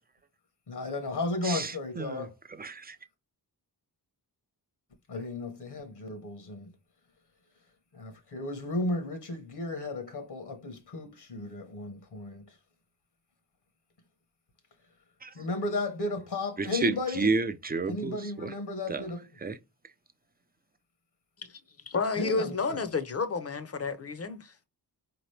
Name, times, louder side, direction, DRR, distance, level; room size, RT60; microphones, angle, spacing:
voice 1, 0.7-2.3 5.1-6.7 7.9-12.5 15.3-17.3 17.9-19.2 22.2-22.8, left 2 dB, 65° left, 1.1 m, -34 dB
voice 2, 1.4-2.3 2.6-3.0 15.2-15.3 16.6-18.5 18.9-19.1 19.4-19.6, right 3 dB, 25° right, 0.4 m, -31 dB
voice 3, 21.9-24.5, left 4 dB, 35° left, 0.6 m, -30 dB
4.7 x 2.9 x 3.2 m
wide cardioid pair, 155°, 42 cm